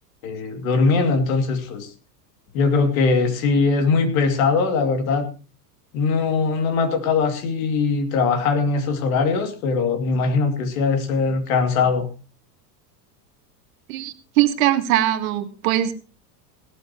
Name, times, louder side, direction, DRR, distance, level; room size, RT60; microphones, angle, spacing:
voice 1, 0.2-1.9 2.5-5.3 5.9-12.1, left 4 dB, 60° left, 6 dB, 2.6 m, -21 dB
voice 2, 13.9-15.9, right 13 dB, 60° right, 9 dB, 1.7 m, -21 dB
17.5 x 12.5 x 3.0 m, 0.34 s
supercardioid pair, 180°, 48 cm